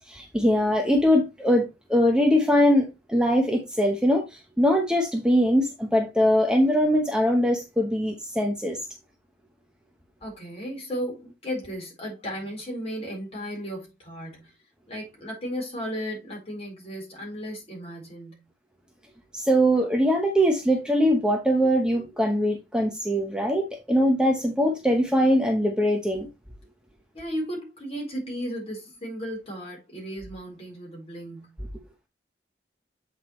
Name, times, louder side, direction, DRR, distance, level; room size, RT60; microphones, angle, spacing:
voice 1, 0.1-8.8 19.3-26.3, equal, 5° right, 0.9 m, -22 dB
voice 2, 10.2-14.5 14.9-18.4 27.1-31.5, equal, 35° left, 4.2 m, -35 dB
8.1 x 4.8 x 3.1 m
head